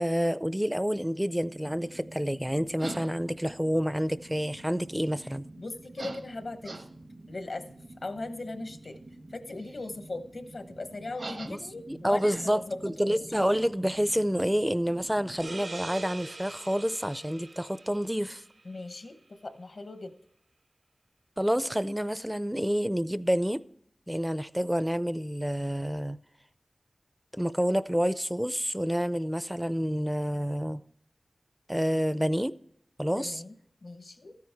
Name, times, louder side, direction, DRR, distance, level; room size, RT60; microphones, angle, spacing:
voice 1, 0.0-5.5 11.5-11.6 11.9-18.4 21.4-23.6 24.1-26.2 27.3-30.8 31.7-32.5 33.0-33.4, equal, 5° right, 0.4 m, -28 dB
sound 1, 1.4-15.6, right 2 dB, 65° right, 1.1 m, -46 dB
voice 2, 5.6-6.8 7.3-7.6 8.0-9.0 9.3-13.3 18.6-20.1 33.1-33.5 33.8-34.4, left 2 dB, 70° left, 1.0 m, -39 dB
sound 2, 15.4-18.8, right 2 dB, 80° right, 0.9 m, -44 dB
13.0 x 9.5 x 3.4 m
wide cardioid pair, 50°, 0 cm